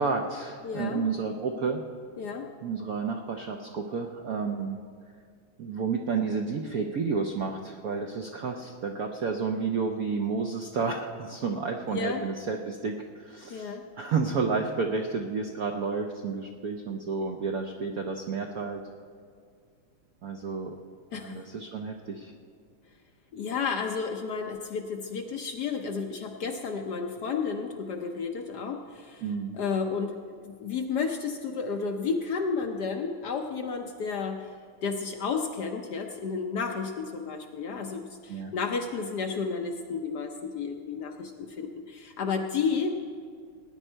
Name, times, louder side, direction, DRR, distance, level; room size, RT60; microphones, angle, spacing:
voice 1, 0.0-1.8 2.6-4.8 5.6-18.8 20.2-20.7 21.1-22.3 29.2-29.6 38.3-38.5, right 5 dB, 70° right, 3 dB, 0.8 m, -31 dB
voice 2, 0.6-1.0 2.2-2.5 11.9-12.2 13.5-13.8 21.1-21.4 23.3-29.2 29.5-34.5 34.8-42.9, left 5 dB, 65° left, 4 dB, 1.0 m, -32 dB
18.0 x 9.9 x 4.5 m, 2.1 s
omnidirectional pair, 2.4 m